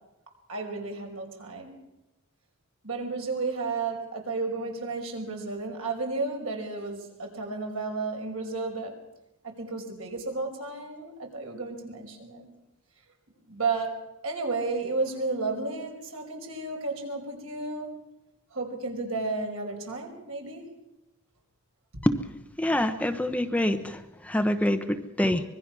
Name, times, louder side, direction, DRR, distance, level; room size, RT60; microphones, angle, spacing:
voice 1, 0.5-1.7 2.8-8.9 9.4-12.5 13.5-17.9 18.5-20.7 21.9-22.0, right 3 dB, 75° right, 2 dB, 5.2 m, -32 dB
voice 2, 22.6-25.4, left 1 dB, 5° left, 8 dB, 0.9 m, -26 dB
25.0 x 22.0 x 6.1 m, 0.91 s
head